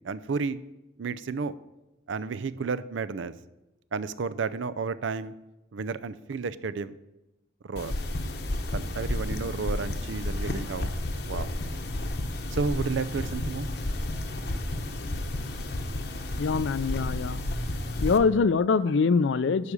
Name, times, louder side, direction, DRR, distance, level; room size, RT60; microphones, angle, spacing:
voice 1, 0.0-0.6 1.0-1.5 2.1-3.3 3.9-5.3 5.7-7.0 7.6-7.9 8.7-10.9 11.2-11.5 12.5-13.7, right 4 dB, 90° right, 15 dB, 0.5 m, -32 dB
sound 1, 7.8-18.2, left 1 dB, 55° left, 0.9 m, -32 dB
voice 2, 16.4-17.4 18.0-19.7, left 5 dB, 80° left, 16 dB, 0.4 m, -24 dB
11.0 x 5.0 x 7.0 m, 0.98 s
head